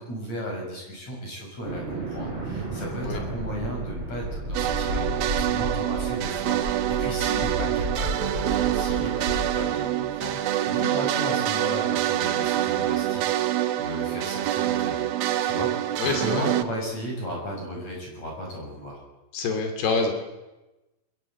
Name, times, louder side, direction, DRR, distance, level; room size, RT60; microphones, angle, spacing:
voice 1, 0.0-10.4 10.7-15.1 15.4-19.0, equal, 45° left, -1 dB, 8.0 m, -35 dB
sound 1, 1.6-10.2, right 1 dB, 30° right, 7.7 m, -33 dB
sound 2, 4.5-16.6, right 13 dB, 75° right, 2.9 m, -26 dB
voice 2, 16.0-16.4 19.3-20.1, left 4 dB, 80° left, 5 dB, 4.9 m, -26 dB
22.5 x 22.0 x 8.2 m, 1.1 s
omnidirectional pair, 4.5 m